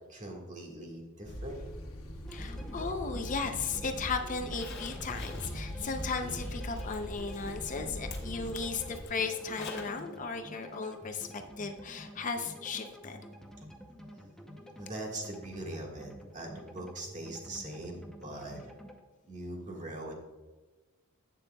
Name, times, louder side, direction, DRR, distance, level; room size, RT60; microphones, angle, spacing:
voice 1, 0.1-1.6 14.8-18.6 19.3-20.2, right 1 dB, 35° right, 1 dB, 1.6 m, -41 dB
sound 1, 1.2-9.0, equal, 85° left, 1.1 m, -41 dB
sound 2, 2.2-19.0, equal, ahead, 0.7 m, -49 dB
voice 2, 2.3-13.2, left 4 dB, 35° left, 6 dB, 0.6 m, -36 dB
Zipper (clothing), 4.5-10.0 10.4-10.5 12.4-12.5 12.9-13.0, left 4 dB, 50° left, 1.4 m, -49 dB
11.0 x 8.4 x 2.2 m, 1.2 s
head